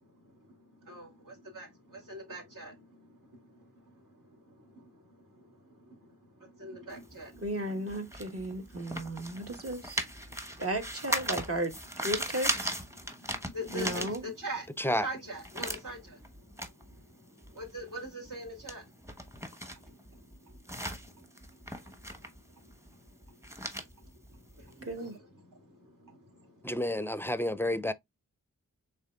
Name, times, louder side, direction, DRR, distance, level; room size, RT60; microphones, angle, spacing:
voice 1, 0.0-10.7 11.2-11.5 12.9-26.7, equal, 65° right, 2.7 m, -46 dB
sound 1, 6.9-14.7 15.0-25.1, equal, 10° right, 1.0 m, -38 dB
voice 2, 7.4-10.0 10.6-11.7 12.0-12.7 13.7-14.2 24.9-25.1, right 1 dB, 45° right, 1.3 m, -34 dB
voice 3, 26.6-27.9, left 1 dB, 5° left, 0.4 m, -30 dB
5.5 x 3.6 x 2.3 m
cardioid pair, 45°, 34 cm